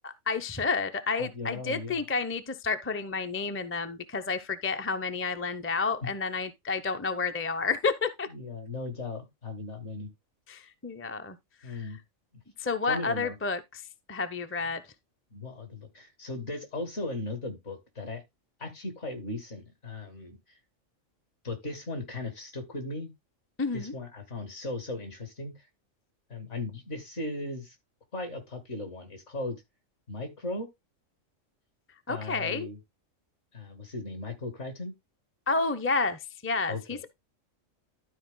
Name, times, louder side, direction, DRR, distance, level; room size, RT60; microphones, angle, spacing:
voice 1, 0.0-8.3 10.5-11.4 11.7-11.8 12.6-13.8 14.1-14.8 23.6-23.9 32.1-32.7 35.5-37.0, left 4 dB, 15° left, 0.5 m, -30 dB
voice 2, 1.2-2.0 6.0-6.1 8.3-10.1 11.6-12.0 12.9-13.3 14.6-14.7 15.3-18.2 18.6-20.6 21.4-23.1 23.7-25.7 26.3-27.8 28.1-29.6 30.1-30.7 32.1-32.8 33.5-34.9 36.7-37.0, left 2 dB, 60° left, 2.9 m, -37 dB
12.5 x 4.6 x 3.8 m
omnidirectional pair, 1.4 m